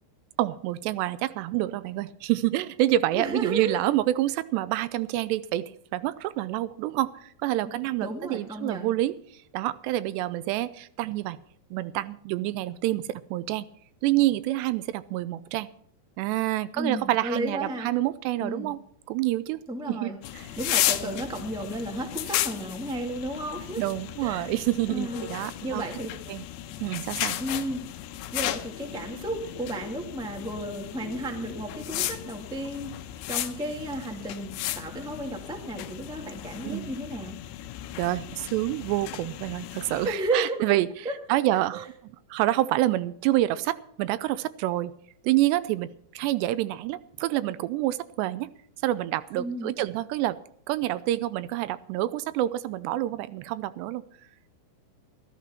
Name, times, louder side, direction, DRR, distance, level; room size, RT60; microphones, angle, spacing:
voice 1, 0.4-9.1 9.5-11.4 11.7-13.7 14.0-15.7 16.2-18.8 19.1-19.6 19.9-20.5 21.0-21.2 23.8-25.8 26.3-26.4 26.8-27.4 36.6-36.9 38.0-40.9 41.3-44.9 45.2-48.5 48.8-50.4 50.7-54.0, right 15 dB, 85° right, 15 dB, 2.8 m, -27 dB
voice 2, 3.1-3.8 8.0-8.9 16.7-17.9 18.4-18.7 19.7-20.2 20.6-23.8 24.2-24.5 24.9-26.1 27.4-27.8 28.3-32.9 33.3-37.4 40.0-40.6 41.0-41.1 41.7-41.9 49.3-49.7, right 1 dB, 5° right, 1 dB, 0.3 m, -33 dB
sound 1, 20.2-40.1, left 13 dB, 85° left, 2.9 m, -34 dB
14.5 x 13.5 x 4.4 m, 0.64 s
omnidirectional pair, 4.8 m